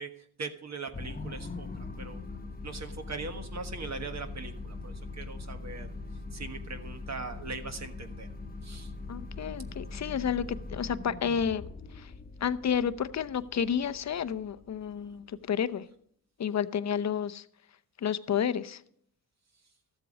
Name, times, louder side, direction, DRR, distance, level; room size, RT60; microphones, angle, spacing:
voice 1, 0.0-1.7 2.0-2.2 2.6-5.9 6.3-8.3 8.6-8.9 10.0-10.1, right 4 dB, 45° right, 6 dB, 1.4 m, -40 dB
sound 1, 0.9-15.4, left 3 dB, 25° left, 1.1 m, -42 dB
voice 2, 9.1-11.7 11.9-12.1 12.4-15.8 16.4-17.4 18.0-18.8, left 8 dB, 45° left, 12 dB, 0.7 m, -30 dB
13.0 x 7.8 x 5.1 m, 0.66 s
cardioid pair, 60°, 38 cm